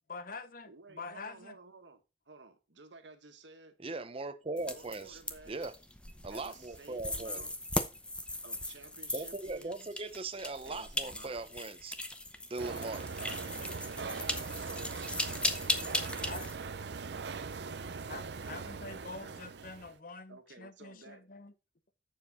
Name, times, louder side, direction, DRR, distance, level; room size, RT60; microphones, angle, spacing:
voice 1, 0.1-1.6 13.9-14.0 16.2-16.5 18.1-21.5, left 4 dB, 50° left, 0.8 m, -46 dB
voice 2, 0.7-3.8 4.5-5.5 6.3-7.5 8.4-10.0 10.6-11.5 13.3-14.9 18.9-19.4 20.3-21.3, right 3 dB, 90° right, 1.5 m, -54 dB
voice 3, 3.8-5.2 5.5-5.7 6.2-7.4 9.1-12.0 12.5-13.3, right 3 dB, 30° right, 0.7 m, -39 dB
sound 1, 4.6-16.6, left 1 dB, 5° left, 0.7 m, -38 dB
sound 2, 12.6-20.0, right 4 dB, 70° right, 0.6 m, -41 dB
7.4 x 6.9 x 4.1 m
head